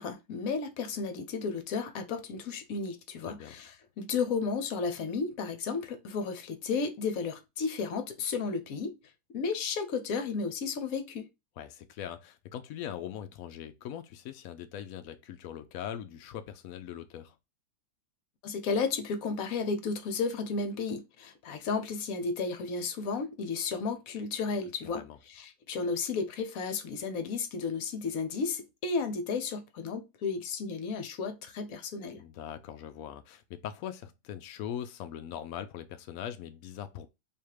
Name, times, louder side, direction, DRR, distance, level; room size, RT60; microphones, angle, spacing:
voice 1, 0.0-8.9 9.3-11.3 18.4-32.2, left 4 dB, 60° left, 1.0 m, -33 dB
voice 2, 3.2-3.6 11.6-17.4 24.8-25.2 32.2-37.1, left 10 dB, 90° left, 0.7 m, -41 dB
3.5 x 2.8 x 4.7 m
omnidirectional pair, 2.1 m